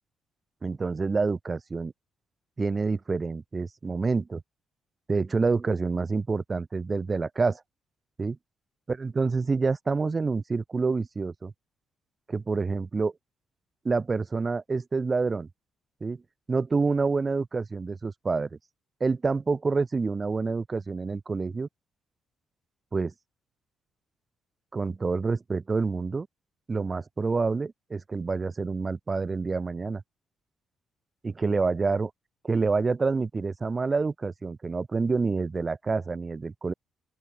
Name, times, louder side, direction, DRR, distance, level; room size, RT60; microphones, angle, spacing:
voice 1, 0.6-1.9 2.6-4.4 5.1-7.6 8.2-8.4 8.9-11.5 12.3-13.1 13.8-15.5 16.0-16.2 16.5-18.6 19.0-21.7 22.9-23.1 24.7-26.3 26.7-30.0 31.2-32.1 32.4-36.7, right 4 dB, 30° right, 4.3 m, -27 dB
open air
cardioid pair, 90°, 0 cm